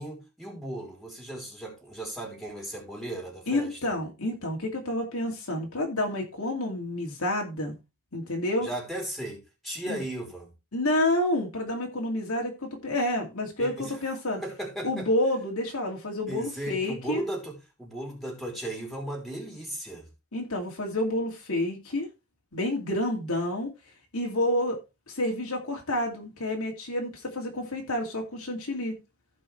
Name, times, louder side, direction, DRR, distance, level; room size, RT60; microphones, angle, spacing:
voice 1, 0.0-3.9 8.6-10.5 13.6-13.9 14.4-15.1 16.3-20.1, right 1 dB, ahead, 3.5 m, -36 dB
voice 2, 3.5-7.7 8.1-8.7 9.9-10.0 10.7-14.4 14.8-17.2 20.3-22.1 22.5-23.7 24.1-24.8 25.1-28.9, left 1 dB, 70° left, 2.6 m, -29 dB
15.5 x 5.4 x 3.2 m
head